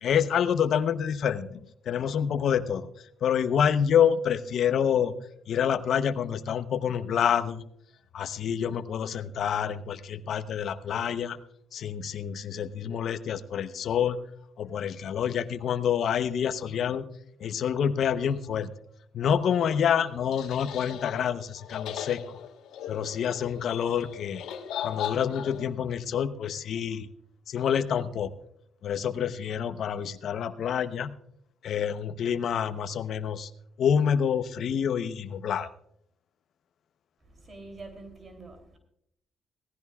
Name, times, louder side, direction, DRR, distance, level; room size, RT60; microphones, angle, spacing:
voice 1, 0.0-2.9 3.2-5.1 5.5-7.6 8.1-11.4 11.7-14.2 14.6-17.1 17.4-18.7 19.1-22.4 22.9-24.5 24.8-27.1 27.5-28.3 28.8-31.1 31.6-33.5 33.8-35.7, left 8 dB, 65° left, 12 dB, 0.8 m, -27 dB
sound 1, 19.5-25.7, left 10 dB, 85° left, 1.3 m, -38 dB
voice 2, 37.2-38.8, right 3 dB, 40° right, 5 dB, 3.1 m, -46 dB
17.5 x 15.5 x 2.4 m, 0.70 s
cardioid pair, 90°, 0 cm